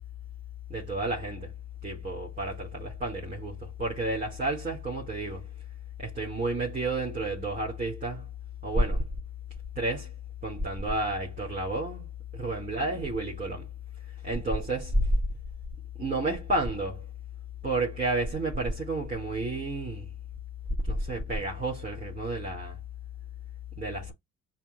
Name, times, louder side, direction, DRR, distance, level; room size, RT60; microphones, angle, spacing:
voice 1, 0.7-1.5 1.8-5.5 6.0-8.3 8.6-9.1 9.8-10.1 10.4-13.7 14.2-15.1 16.0-17.1 17.6-20.1 20.9-22.8 23.8-24.1, right 1 dB, 25° right, 2.8 m, -30 dB
7.2 x 2.5 x 2.5 m
cardioid pair, 90°, 30 cm